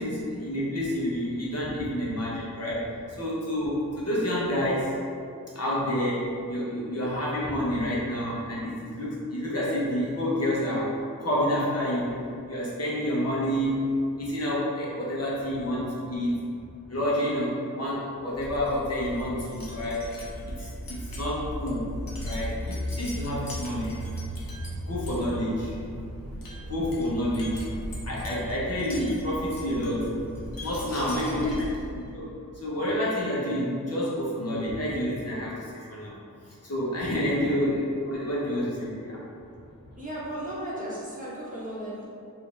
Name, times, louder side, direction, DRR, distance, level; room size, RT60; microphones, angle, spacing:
voice 1, 0.0-4.9 5.5-10.9 11.2-12.2 12.5-13.8 14.2-16.4 16.9-20.1 20.5-21.9 22.2-24.0 24.9-25.8 26.7-27.8 28.0-30.1 30.6-31.6 31.9-36.2 36.4-39.2, equal, 45° left, -7 dB, 1.0 m, -29 dB
Wind chime, 18.3-32.0, equal, 80° left, 0.9 m, -37 dB
voice 2, 30.8-31.6 37.0-37.6 40.0-42.1, right 1 dB, 25° right, -8 dB, 1.2 m, -36 dB
5.1 x 2.7 x 3.4 m, 2.5 s
wide cardioid pair, 100°, 34 cm